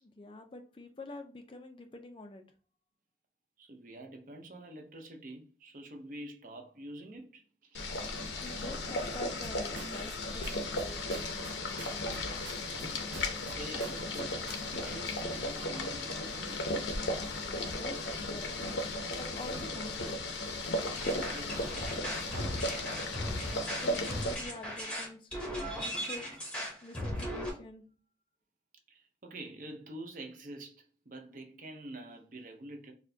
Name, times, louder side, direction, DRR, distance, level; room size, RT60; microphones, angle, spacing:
voice 1, 0.0-2.4 8.2-12.2 17.4-18.5 19.1-20.2 23.4-25.3 25.6-26.4 26.8-27.8, left 2 dB, 30° left, 0.3 m, -46 dB
voice 2, 3.6-7.9 12.6-16.6 20.9-21.8 22.2-22.7 28.9-32.9, right 1 dB, 45° right, 0.6 m, -47 dB
Boiling, 7.7-24.3, left 2 dB, 85° left, 0.7 m, -35 dB
sound 1, 9.4-10.2 10.4-11.5 11.8-12.9 13.1-14.2 14.5-14.8, right 5 dB, 90° right, 0.3 m, -49 dB
sound 2, 20.9-27.5, equal, 5° left, 0.8 m, -37 dB
4.3 x 2.2 x 2.6 m
head